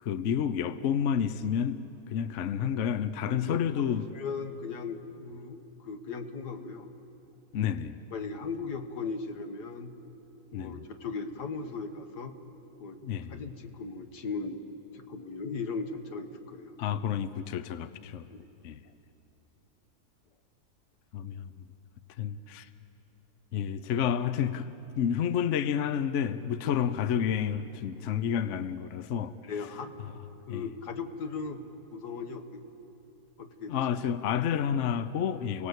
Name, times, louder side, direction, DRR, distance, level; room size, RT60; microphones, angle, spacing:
voice 1, 0.0-1.8 2.1-4.1 7.5-8.0 10.5-10.9 13.0-13.5 16.8-18.3 18.6-18.8 21.1-21.5 22.2-22.7 23.5-24.7 25.0-29.3 30.5-30.7 33.7-35.7, left 8 dB, 60° left, 13 dB, 0.9 m, -30 dB
voice 2, 3.3-3.9 4.1-6.9 8.1-9.9 10.5-12.4 12.8-13.0 13.3-14.6 14.9-16.9 18.3-18.5 26.6-26.8 29.4-30.1 30.5-32.6 33.4-33.8, left 4 dB, 80° left, 7 dB, 1.9 m, -38 dB
29.5 x 18.0 x 8.1 m, 2.9 s
omnidirectional pair, 1.7 m